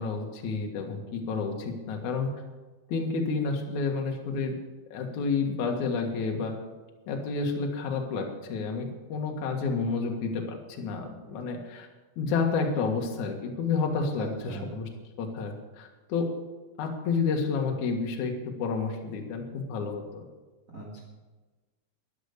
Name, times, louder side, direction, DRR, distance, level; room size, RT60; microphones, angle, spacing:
voice 1, 0.0-2.3 2.9-4.6 4.9-6.5 7.1-11.9 12.2-14.3 14.7-14.8 15.2-16.3 16.8-20.2, left 4 dB, 60° left, 2 dB, 2.1 m, -30 dB
voice 2, 14.2-14.7 20.7-21.0, right 2 dB, 25° right, -3 dB, 1.8 m, -39 dB
12.5 x 11.0 x 6.7 m, 1.3 s
omnidirectional pair, 5.8 m